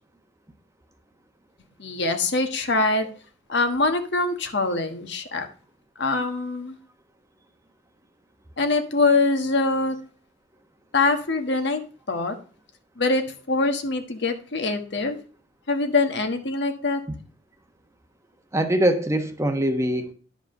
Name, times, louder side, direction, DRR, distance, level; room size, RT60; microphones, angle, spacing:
voice 1, 1.8-3.1 3.5-5.5 6.0-6.7 8.6-9.9 10.9-11.8 12.1-12.4 13.0-15.2 15.7-17.0, left 3 dB, 60° left, 1.4 m, -23 dB
voice 2, 18.5-20.1, right 1 dB, 15° right, 1.0 m, -22 dB
11.0 x 5.0 x 6.5 m
head